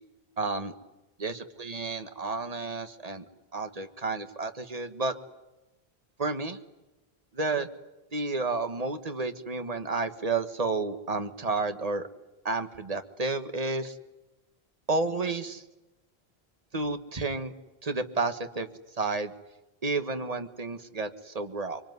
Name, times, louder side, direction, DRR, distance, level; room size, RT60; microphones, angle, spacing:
voice 1, 0.4-0.7 1.2-3.2 3.5-5.1 6.2-6.6 7.3-7.7 8.1-12.1 12.4-13.9 14.9-15.6 16.7-17.5 17.8-18.7 19.0-19.3 19.8-21.8, right 3 dB, 35° right, 8 dB, 1.7 m, -31 dB
25.0 x 24.0 x 9.5 m, 1.0 s
omnidirectional pair, 1.1 m